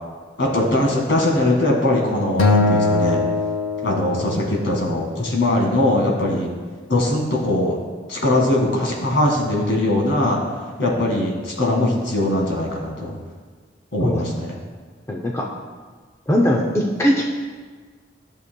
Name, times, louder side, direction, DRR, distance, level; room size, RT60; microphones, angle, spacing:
voice 1, 0.4-3.2 3.8-6.5 6.9-7.8 8.1-10.4 10.8-13.1 13.9-14.5, left 1 dB, 65° left, -1 dB, 1.8 m, -21 dB
Acoustic guitar, 2.4-4.8, left 2 dB, 85° left, 0.7 m, -21 dB
voice 2, 15.1-15.5 16.3-17.2, equal, 15° left, -1 dB, 0.5 m, -20 dB
14.0 x 6.8 x 2.3 m, 1.5 s
head